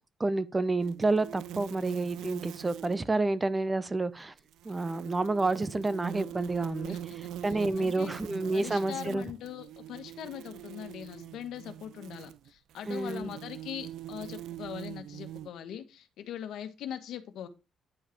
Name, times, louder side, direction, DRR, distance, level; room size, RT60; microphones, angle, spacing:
voice 1, 0.2-4.3 4.6-9.2 12.9-13.3, right 2 dB, 20° right, 0.8 m, -29 dB
sound 1, 0.8-3.1 4.4-15.5, right 12 dB, 85° right, 0.4 m, -43 dB
voice 2, 7.4-8.2 8.5-17.5, left 10 dB, 80° left, 1.3 m, -41 dB
9.9 x 4.9 x 4.5 m
cardioid pair, 90°, 0 cm